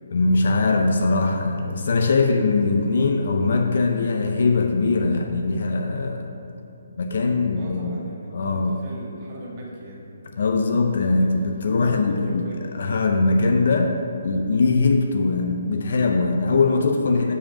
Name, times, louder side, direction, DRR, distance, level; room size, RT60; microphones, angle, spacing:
voice 1, 0.1-6.3 7.0-8.0 8.3-8.8 10.4-12.5 12.7-17.3, left 3 dB, 60° left, 4 dB, 0.5 m, -21 dB
voice 2, 7.5-10.1 11.0-11.3 11.9-12.6, right 1 dB, 35° right, -4 dB, 1.4 m, -40 dB
5.1 x 5.0 x 5.8 m, 2.9 s
hypercardioid pair, 160°, 0 cm